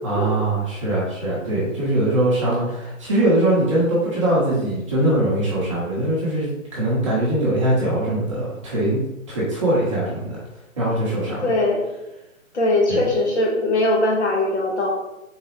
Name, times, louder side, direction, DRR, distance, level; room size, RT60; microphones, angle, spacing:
voice 1, 0.0-9.0 9.3-10.4 10.8-11.5 12.9-13.0, right 1 dB, 25° right, -7 dB, 1.0 m, -21 dB
voice 2, 11.4-11.8 12.5-14.9, left 2 dB, 55° left, -1 dB, 1.3 m, -20 dB
4.0 x 3.8 x 3.0 m, 0.94 s
hypercardioid pair, 165°, 40 cm